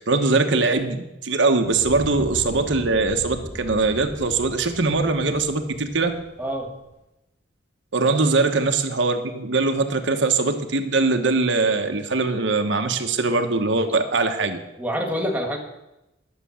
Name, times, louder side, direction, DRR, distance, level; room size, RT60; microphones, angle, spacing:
voice 1, 0.0-6.1 7.9-14.6, right 3 dB, 70° right, 5 dB, 1.2 m, -22 dB
Fire, 1.6-6.8, equal, 15° left, 2.5 m, -38 dB
voice 2, 6.4-6.7 14.8-15.6, equal, 10° right, 2 dB, 1.9 m, -26 dB
11.5 x 6.8 x 8.6 m, 0.92 s
head